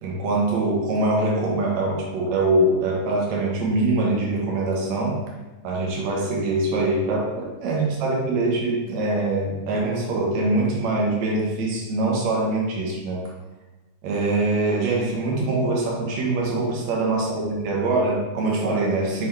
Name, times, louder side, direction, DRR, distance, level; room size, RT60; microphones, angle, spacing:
voice 1, 0.0-5.2 5.6-13.2 14.0-19.3, right 2 dB, 70° right, -3 dB, 2.5 m, -23 dB
6.1 x 5.9 x 3.3 m, 1.1 s
omnidirectional pair, 3.4 m